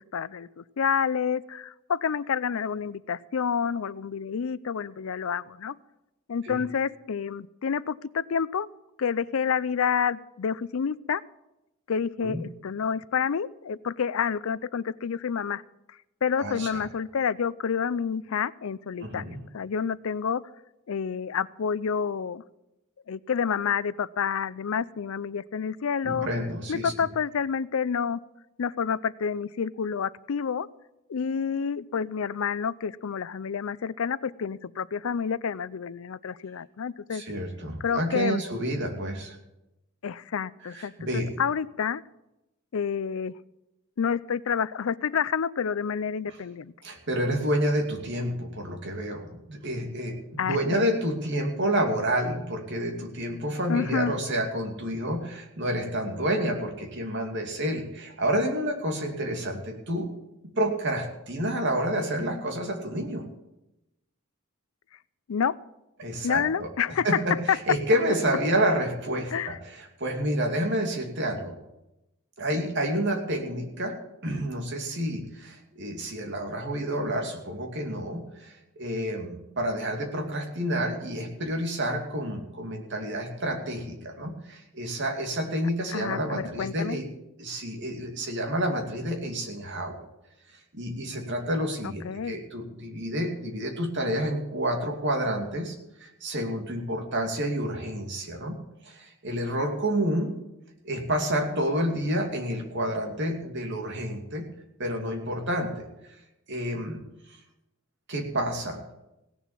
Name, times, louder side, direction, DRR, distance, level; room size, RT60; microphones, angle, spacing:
voice 1, 0.0-5.8 6.3-8.7 9.0-11.2 11.9-15.6 16.2-19.2 19.5-20.4 20.9-22.4 23.1-26.3 26.7-28.2 28.6-30.7 31.1-37.2 37.8-38.4 40.0-42.0 42.7-43.3 44.0-46.7 50.4-50.8 53.7-54.1 65.3-65.5 66.2-67.1 67.5-67.8 69.3-69.6 85.9-87.0 91.8-92.3, left 7 dB, 80° left, 19 dB, 0.5 m, -29 dB
voice 2, 16.4-16.9 19.0-19.4 26.0-26.9 37.1-39.4 40.7-41.4 46.3-46.4 46.8-60.1 60.6-63.3 66.0-66.7 67.0-71.6 72.4-74.0 74.2-87.1 87.4-90.1 90.7-98.6 98.8-100.3 100.8-104.4 104.8-105.8 106.5-107.0 108.1-108.8, right 1 dB, 60° right, 2 dB, 2.6 m, -29 dB
17.0 x 7.1 x 7.4 m, 0.92 s
head